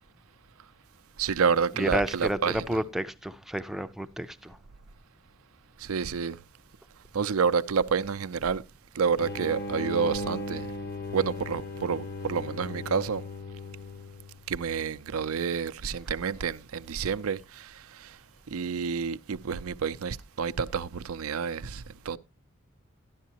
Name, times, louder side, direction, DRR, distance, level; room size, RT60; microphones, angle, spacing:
voice 1, 1.2-2.6 5.8-6.4 7.1-8.6 8.9-10.7 11.1-13.2 14.5-18.1 18.5-22.2, right 6 dB, 90° right, 0.5 m, -29 dB
voice 2, 1.7-4.6, right 1 dB, ahead, 0.5 m, -31 dB
sound 1, 9.2-14.5, left 1 dB, 45° left, 1.0 m, -37 dB
13.0 x 11.0 x 2.8 m
head